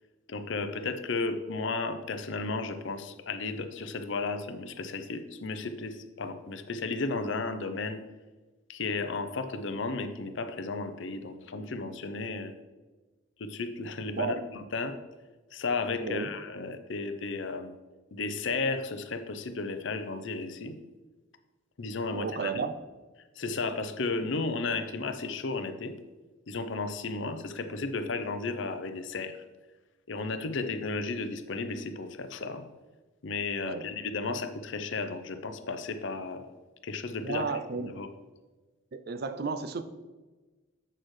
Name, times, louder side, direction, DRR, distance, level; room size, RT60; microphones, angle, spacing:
voice 1, 0.3-8.0 8.7-12.5 13.4-14.9 15.5-17.7 18.1-20.8 21.8-22.6 23.4-25.9 26.5-29.4 30.1-32.6 33.2-36.4 36.8-37.4 37.8-38.1, left 3 dB, 60° left, 9 dB, 0.6 m, -34 dB
voice 2, 16.0-16.3 22.1-22.8 33.6-33.9 37.2-37.9 38.9-39.8, right 5 dB, 50° right, 10 dB, 0.4 m, -33 dB
7.6 x 6.4 x 3.2 m, 1.2 s
head